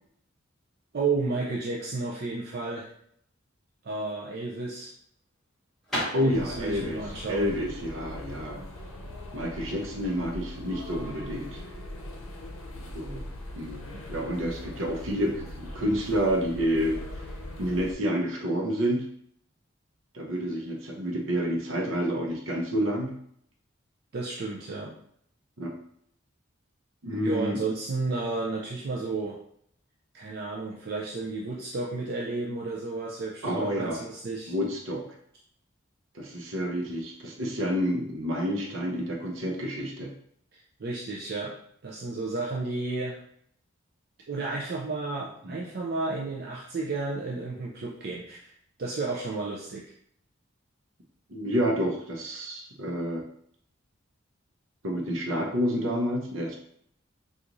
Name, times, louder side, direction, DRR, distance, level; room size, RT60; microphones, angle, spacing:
voice 1, 0.9-2.9 3.8-4.9 6.2-7.5 24.1-24.9 27.2-29.4 30.1-34.5 40.5-41.5 41.8-43.2 44.3-48.5 48.8-49.9, right 3 dB, 50° right, -3 dB, 0.4 m, -32 dB
sound 1, 4.9-9.6, equal, ahead, 1.3 m, -38 dB
voice 2, 6.1-7.0 7.3-8.6 9.3-11.6 12.9-13.2 13.5-13.8 14.1-17.0 17.6-19.0 20.1-23.1 25.6-25.7 27.0-27.6 33.4-34.0 34.5-35.0 36.1-40.1 45.4-45.5 51.3-53.2 54.8-56.6, equal, 80° right, 1 dB, 0.8 m, -29 dB
sound 2, 6.3-17.9, left 1 dB, 85° left, 0.6 m, -41 dB
3.8 x 2.4 x 3.0 m, 0.66 s
head